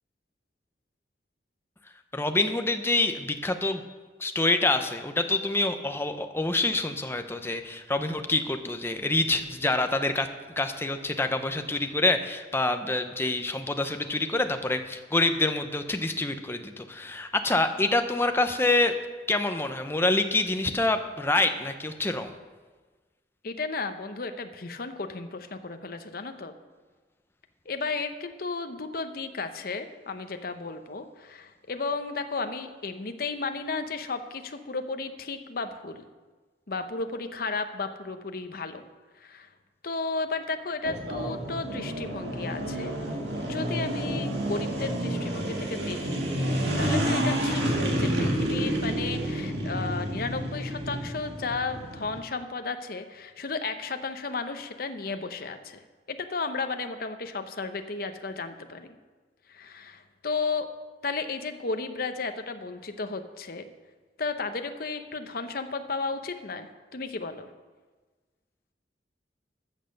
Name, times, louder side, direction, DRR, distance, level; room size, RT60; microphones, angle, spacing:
voice 1, 2.1-3.8 4.2-10.3 10.6-18.9 19.3-22.3, left 2 dB, 15° left, 7 dB, 0.7 m, -26 dB
voice 2, 23.4-26.5 27.7-36.0 36.7-38.8 39.2-39.5 39.8-42.9 43.5-55.8 56.1-58.9 59.5-60.7 61.0-63.6 64.2-67.5, left 4 dB, 55° left, 8 dB, 0.8 m, -34 dB
sound 1, 40.8-52.2, right 1 dB, 75° right, 2.0 m, -29 dB
13.5 x 6.7 x 6.5 m, 1.3 s
head